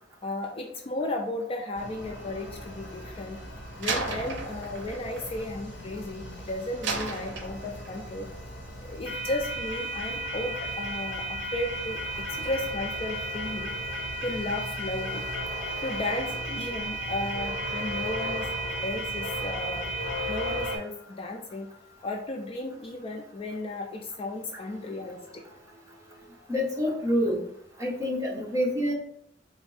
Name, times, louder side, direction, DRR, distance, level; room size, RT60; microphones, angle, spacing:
voice 1, 0.2-3.4 3.8-8.3 8.8-12.0 12.3-13.7 14.2-18.5 18.8-25.3 26.4-26.5, left 2 dB, 30° left, 2 dB, 0.4 m, -34 dB
sound 1, 1.8-20.8, right 1 dB, 75° left, 1.5 m, -35 dB
Slam, 3.8-6.3 6.8-8.1, right 4 dB, 70° right, 0.6 m, -35 dB
voice 2, 26.5-27.4 27.8-28.9, equal, 15° right, -3 dB, 1.0 m, -27 dB
4.1 x 2.6 x 3.3 m, 0.72 s
head